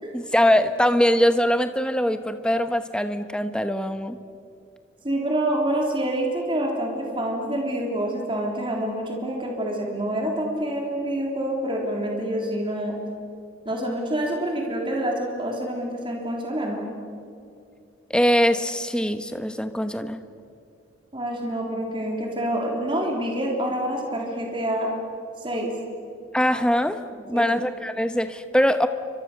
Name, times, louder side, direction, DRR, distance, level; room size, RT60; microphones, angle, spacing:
voice 1, 0.1-4.2 18.1-20.2 26.3-27.0 27.3-28.9, equal, 5° left, 9 dB, 1.0 m, -22 dB
voice 2, 5.0-13.0 13.7-16.8 21.1-24.9 25.4-25.7 27.3-27.5, right 1 dB, 25° right, 0 dB, 3.5 m, -27 dB
30.0 x 25.0 x 6.8 m, 2.5 s
head